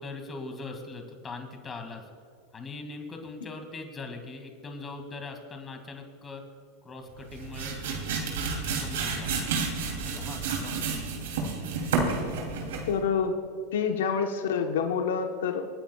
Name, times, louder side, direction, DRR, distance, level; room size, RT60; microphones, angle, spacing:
voice 1, 0.0-2.1 2.5-6.4 6.8-9.5 10.0-11.0, left 3 dB, 25° left, 4 dB, 2.1 m, -41 dB
sound 1, 7.2-13.0, right 4 dB, 80° right, 2.8 m, -30 dB
voice 2, 12.9-13.4 13.7-15.7, left 6 dB, 80° left, 5 dB, 1.0 m, -27 dB
27.0 x 9.5 x 2.3 m, 2.3 s
hypercardioid pair, 115°, 0 cm